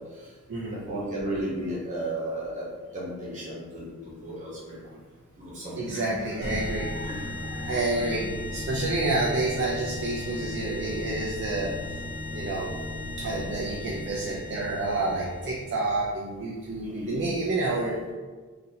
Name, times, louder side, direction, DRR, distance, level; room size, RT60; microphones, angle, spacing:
voice 1, 0.7-2.7 2.9-4.8 5.4-6.0 7.0-7.2 7.9-8.1 16.8-17.2, right 1 dB, 35° right, -7 dB, 1.0 m, -34 dB
voice 2, 5.8-8.3 8.5-12.0 12.3-12.8 13.2-18.1, right 2 dB, 55° right, -2 dB, 0.4 m, -29 dB
sound 1, 6.4-15.8, left 2 dB, 60° left, 0.6 m, -36 dB
3.9 x 2.6 x 2.7 m, 1.4 s
head